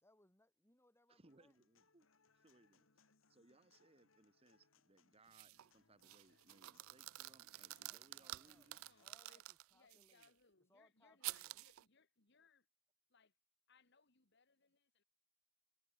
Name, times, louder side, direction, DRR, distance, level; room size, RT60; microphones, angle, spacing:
voice 1, 0.0-1.5 7.7-8.7 9.0-10.2 10.7-11.6, left 1 dB, 10° left, 2.4 m, -73 dB
voice 2, 1.1-2.1 2.3-3.0 3.3-8.8, right 2 dB, 30° right, 1.3 m, -69 dB
Human voice / Acoustic guitar, 1.3-9.3, left 4 dB, 80° left, 2.2 m, -76 dB
sound 1, 5.3-5.7 6.0-10.3 11.2-11.8, right 19 dB, 80° right, 0.3 m, -50 dB
voice 3, 8.7-9.4 9.7-12.7 13.1-13.4 13.7-15.0, left 5 dB, 55° left, 2.3 m, -72 dB
head